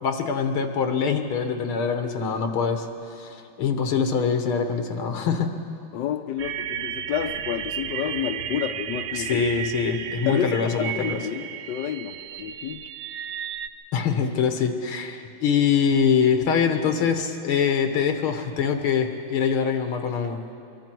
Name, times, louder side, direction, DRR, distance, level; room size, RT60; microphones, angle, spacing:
voice 1, 0.0-5.5 9.2-11.2 13.9-20.4, left 6 dB, 90° left, 5 dB, 2.2 m, -24 dB
voice 2, 5.9-9.5 10.3-12.8, left 10 dB, 65° left, 6 dB, 1.3 m, -30 dB
sound 1, 6.4-13.7, right 10 dB, 75° right, 1.4 m, -33 dB
25.0 x 22.5 x 4.6 m, 2.5 s
omnidirectional pair, 2.3 m